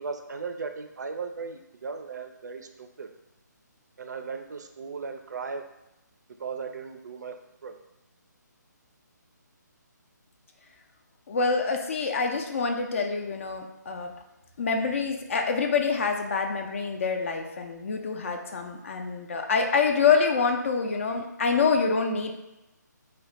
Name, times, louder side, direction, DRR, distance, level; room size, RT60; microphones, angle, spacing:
voice 1, 0.0-3.1 4.0-5.6 6.4-7.8, right 5 dB, 65° right, 6 dB, 0.4 m, -37 dB
voice 2, 11.3-14.1 14.6-22.3, left 5 dB, 45° left, 3 dB, 0.4 m, -26 dB
2.2 x 2.1 x 3.8 m, 0.95 s
figure-of-eight pair, 145°, 10 cm